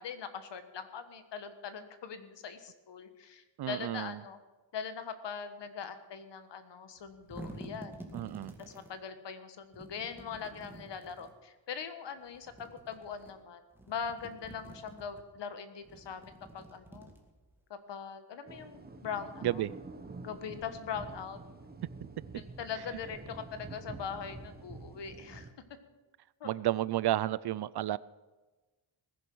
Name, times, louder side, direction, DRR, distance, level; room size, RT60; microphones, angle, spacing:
voice 1, 0.0-4.4 4.7-7.9 8.6-13.6 13.9-17.1 17.7-19.6 20.2-21.4 22.3-25.5 26.4-26.6, left 6 dB, 60° left, 1.5 m, -41 dB
voice 2, 3.6-4.2 8.1-8.5 19.4-19.7 22.3-22.4 26.4-28.0, right 13 dB, 60° right, 0.5 m, -31 dB
sound 1, 7.0-8.9 9.7-11.3 12.3-13.3 13.7-15.2 15.8-17.6, right 1 dB, 5° right, 2.2 m, -49 dB
sound 2, 18.5-25.5, right 3 dB, 20° right, 1.1 m, -47 dB
18.5 x 10.5 x 6.2 m
wide cardioid pair, 130°, 47 cm